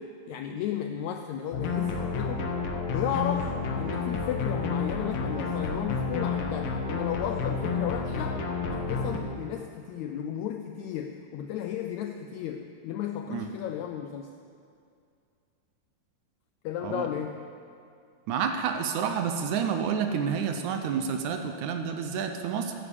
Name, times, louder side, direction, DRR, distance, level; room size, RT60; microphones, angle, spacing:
voice 1, 0.0-2.4 2.9-14.3 16.6-17.5, left 9 dB, 85° left, 6 dB, 1.6 m, -34 dB
sound 1, 1.5-9.2, left 4 dB, 60° left, 1.7 m, -30 dB
voice 2, 18.3-22.7, right 7 dB, 75° right, 6 dB, 2.0 m, -29 dB
13.0 x 10.0 x 7.1 m, 2.4 s
omnidirectional pair, 3.8 m